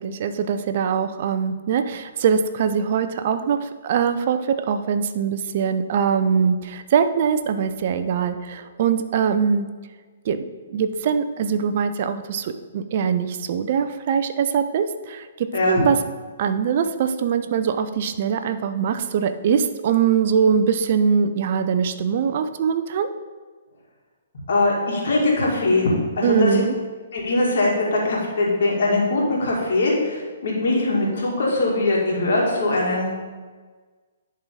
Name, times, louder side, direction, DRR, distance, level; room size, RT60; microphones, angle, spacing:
voice 1, 0.0-9.7 10.2-16.0 16.4-23.1 26.2-26.7, right 7 dB, 50° right, 10 dB, 0.5 m, -22 dB
voice 2, 24.5-25.9 26.2-26.6 27.1-33.1, left 2 dB, 60° left, -3 dB, 2.4 m, -21 dB
10.5 x 4.3 x 3.8 m, 1.4 s
figure-of-eight pair, 125°, 0 cm